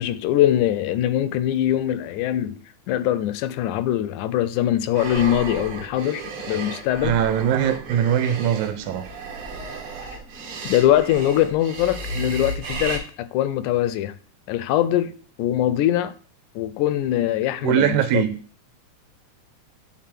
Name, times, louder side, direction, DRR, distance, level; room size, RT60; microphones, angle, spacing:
voice 1, 0.0-7.2 10.0-10.2 10.6-14.1 14.5-15.1 15.4-16.1 16.6-18.2, left 12 dB, 90° left, 2.0 m, -22 dB
sound 1, 4.9-13.0, right 3 dB, 60° right, 1.7 m, -33 dB
voice 2, 7.0-9.0 17.6-18.3, right 9 dB, 80° right, 2.1 m, -21 dB
9.3 x 3.8 x 4.5 m
omnidirectional pair, 3.4 m